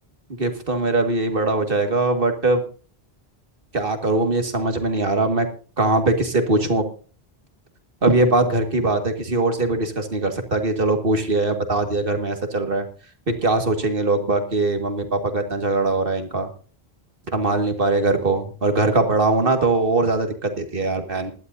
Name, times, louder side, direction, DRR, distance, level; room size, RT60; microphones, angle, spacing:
voice 1, 0.4-2.6 3.7-5.5 5.8-6.9 8.0-12.9 13.3-16.5 17.3-21.3, right 2 dB, 60° right, 6 dB, 2.1 m, -21 dB
20.5 x 12.0 x 2.6 m, 0.38 s
omnidirectional pair, 1.1 m